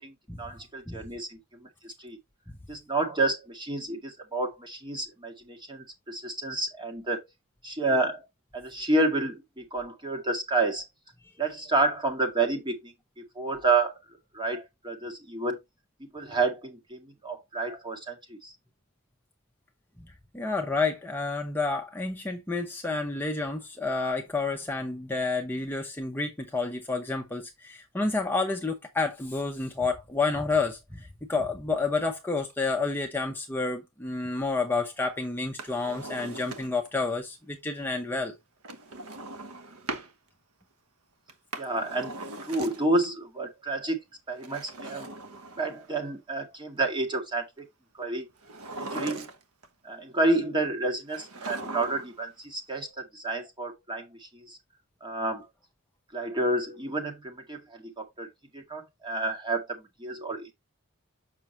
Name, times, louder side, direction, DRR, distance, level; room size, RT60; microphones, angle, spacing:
voice 1, 0.0-2.2 2.7-7.3 7.6-8.3 8.5-10.8 11.4-12.9 13.4-13.9 14.3-15.6 16.1-18.5 41.6-44.0 44.3-45.1 45.6-47.7 47.9-48.3 48.8-49.3 49.8-54.6 55.0-55.5 56.1-58.3 58.5-60.5, right 2 dB, 20° right, 1.9 m, -30 dB
voice 2, 20.0-38.4, left 3 dB, 10° left, 0.9 m, -30 dB
Drawer open or close, 35.4-37.0 38.6-40.1 41.3-43.1 44.3-46.0 48.4-49.7 51.1-52.2 52.5-52.6, right 2 dB, 85° right, 1.2 m, -40 dB
7.1 x 6.1 x 3.0 m
head